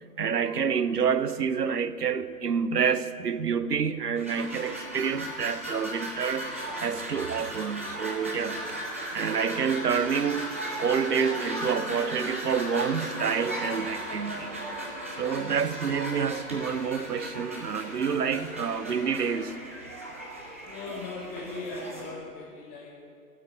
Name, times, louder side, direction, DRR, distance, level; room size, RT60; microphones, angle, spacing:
voice 1, 0.2-6.5 6.8-8.6 9.1-14.6 15.2-19.6, right 6 dB, 80° right, 0.7 m, -28 dB
sound 1, 4.2-22.1, right 1 dB, 10° right, 0.4 m, -36 dB
voice 2, 20.7-22.9, left 3 dB, 20° left, 1.3 m, -39 dB
9.1 x 8.5 x 9.2 m
figure-of-eight pair, 120°, 46 cm